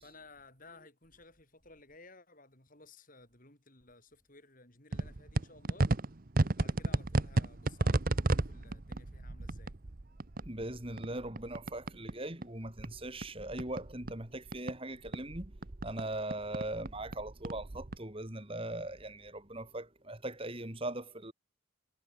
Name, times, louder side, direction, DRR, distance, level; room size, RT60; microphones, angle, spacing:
voice 1, 0.0-5.9 6.5-9.7, left 3 dB, 40° left, 5.4 m, -57 dB
sound 1, 4.9-12.2 12.4-14.8 15.0-18.0, right 2 dB, 40° right, 0.9 m, -33 dB
voice 2, 10.4-15.6 15.8-21.3, right 1 dB, 25° right, 3.1 m, -40 dB
head